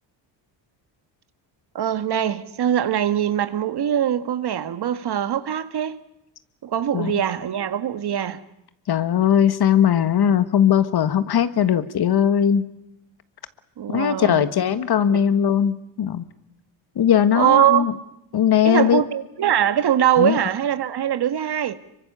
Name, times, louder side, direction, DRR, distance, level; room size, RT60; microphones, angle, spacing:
voice 1, 1.7-6.0 6.6-8.4 13.8-14.5 15.1-15.2 17.3-17.9 18.6-21.7, right 10 dB, 55° right, 1.7 m, -22 dB
voice 2, 8.9-12.6 13.9-16.2 16.9-17.9 18.3-19.0 20.2-20.4, left 9 dB, 55° left, 1.6 m, -19 dB
25.5 x 24.0 x 6.9 m
cardioid pair, 85°, 47 cm